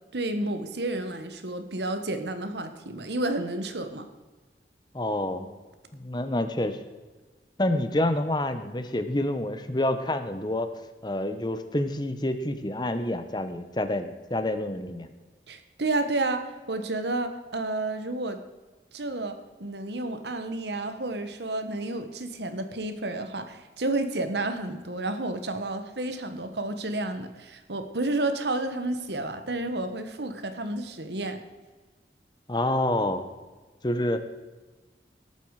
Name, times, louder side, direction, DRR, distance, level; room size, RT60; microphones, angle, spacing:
voice 1, 0.1-4.1 15.5-18.4 18.9-31.4, right 2 dB, 75° right, 9 dB, 1.4 m, -31 dB
voice 2, 4.9-5.5 5.9-6.8 7.6-10.7 11.0-15.1 32.5-33.3 33.8-34.2, left 1 dB, 25° left, 9 dB, 1.0 m, -28 dB
18.5 x 8.9 x 4.9 m, 1.3 s
head